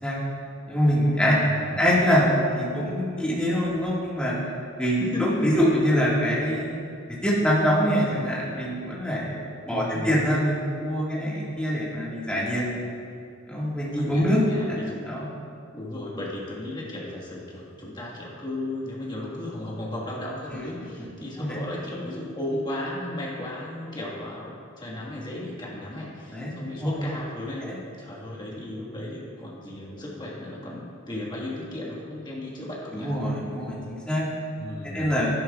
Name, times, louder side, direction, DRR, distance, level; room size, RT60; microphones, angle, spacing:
voice 1, 0.7-1.4 1.8-4.4 4.8-6.7 7.2-12.6 13.5-14.4 14.7-15.3 21.4-21.5 26.3-26.5 26.8-26.9 27.6-27.8 32.9-34.5 34.9-35.3, equal, 5° left, -7 dB, 1.9 m, -24 dB
voice 2, 1.4-1.8 5.0-5.7 9.7-10.1 13.9-15.0 15.7-27.7 28.0-33.1 34.6-35.0, left 1 dB, 20° left, -5 dB, 1.7 m, -35 dB
11.0 x 11.0 x 2.4 m, 2.4 s
head